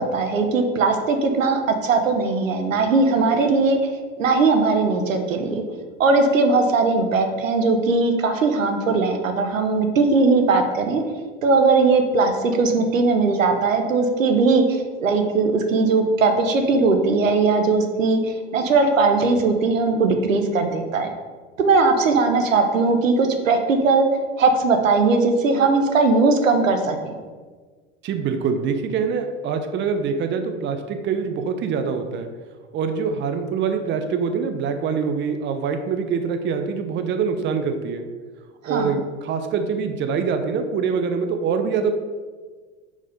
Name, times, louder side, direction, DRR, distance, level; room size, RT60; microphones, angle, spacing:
voice 1, 0.0-3.9 4.2-5.6 6.0-11.0 11.4-21.1 21.6-24.1 24.4-27.1 38.6-39.0, right 3 dB, 85° right, 6 dB, 0.8 m, -19 dB
voice 2, 28.0-32.3 32.7-38.1 38.7-41.9, right 6 dB, 30° right, 7 dB, 0.6 m, -24 dB
4.8 x 4.3 x 5.2 m, 1.4 s
hypercardioid pair, 90°, 38 cm